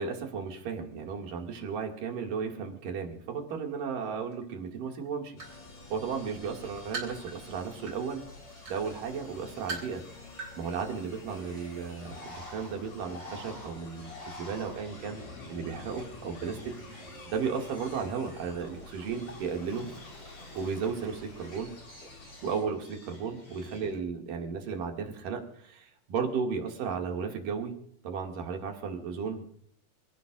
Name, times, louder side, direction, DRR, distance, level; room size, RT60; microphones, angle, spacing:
voice 1, 0.0-5.4 5.9-8.2 8.7-10.0 10.6-14.1 14.4-15.2 15.5-16.7 17.2-19.9 20.6-21.8 22.4-27.8 28.0-29.6, right 6 dB, 75° right, 2 dB, 3.8 m, -34 dB
sound 1, 4.3-4.4 4.9-5.6 6.1-8.1 8.7-8.8 9.4-10.0 10.3-10.6 10.8-10.9, right 4 dB, 35° right, 4.0 m, -39 dB
sound 2, 5.4-22.6, left 2 dB, 50° left, 5.6 m, -49 dB
Bird, 12.0-24.0, left 1 dB, 25° left, 4.7 m, -50 dB
27.0 x 17.0 x 2.6 m, 0.65 s
omnidirectional pair, 4.0 m